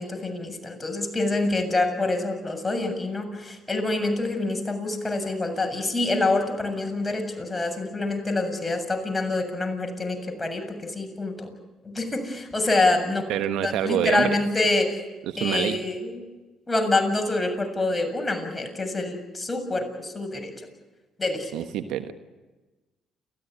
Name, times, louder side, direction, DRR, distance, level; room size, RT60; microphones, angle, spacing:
voice 1, 0.0-11.5 11.8-13.3 13.6-15.0 15.4-16.2 16.7-20.5 21.2-21.5, left 2 dB, 20° left, 4 dB, 7.3 m, -26 dB
voice 2, 13.3-14.3 15.2-15.8 21.5-22.1, right 11 dB, 75° right, 9 dB, 1.3 m, -26 dB
29.5 x 15.0 x 9.8 m, 1.2 s
hypercardioid pair, 50°, 0 cm